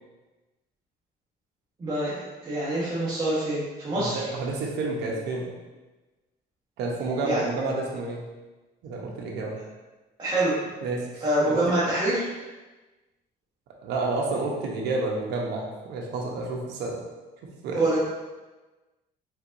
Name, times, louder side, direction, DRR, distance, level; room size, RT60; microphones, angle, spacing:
voice 1, 1.8-4.2 7.2-7.4 10.2-10.5 11.2-12.3 17.7-18.0, right 1 dB, 25° right, -11 dB, 1.3 m, -25 dB
voice 2, 3.9-5.5 6.8-8.2 8.8-9.6 10.8-11.6 13.8-17.0 17.6-17.9, right 3 dB, 80° right, -1 dB, 0.9 m, -30 dB
4.4 x 3.9 x 2.6 m, 1.2 s
cardioid pair, 110°, 17 cm